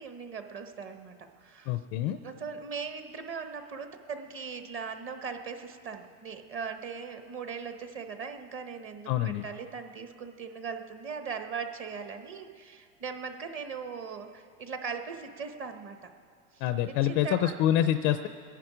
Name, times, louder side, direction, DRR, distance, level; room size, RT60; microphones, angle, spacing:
voice 1, 0.0-1.8 2.2-16.0 16.5-17.6, right 5 dB, 30° right, 6 dB, 1.1 m, -39 dB
voice 2, 1.7-2.2 9.1-9.4 16.6-18.3, left 11 dB, 30° left, 10 dB, 0.4 m, -26 dB
23.5 x 10.5 x 5.0 m, 2.3 s
supercardioid pair, 130°, 41 cm